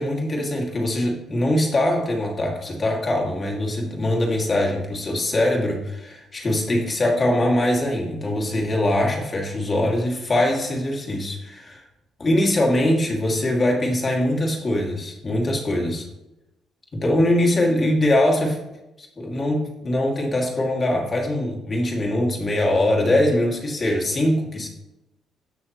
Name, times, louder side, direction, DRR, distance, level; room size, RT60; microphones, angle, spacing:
voice 1, 0.0-11.8 12.2-16.1 16.9-18.6 19.0-24.7, left 1 dB, 25° left, -1 dB, 2.3 m, -22 dB
17.5 x 6.3 x 3.1 m, 0.94 s
cardioid pair, 150°, 0 cm